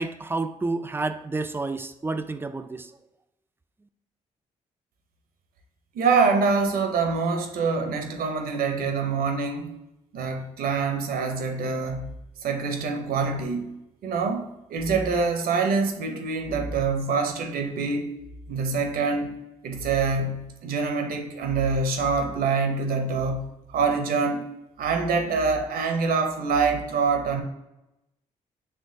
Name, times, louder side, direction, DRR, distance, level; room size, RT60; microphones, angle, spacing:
voice 1, 0.0-2.9, right 3 dB, 15° right, 10 dB, 0.3 m, -30 dB
voice 2, 5.9-9.7 10.1-12.1 12.4-13.8 14.0-18.1 18.5-19.3 19.6-24.5 24.8-27.4, right 4 dB, 70° right, 5 dB, 0.6 m, -25 dB
4.4 x 2.8 x 2.6 m, 0.91 s
supercardioid pair, 50°, 16 cm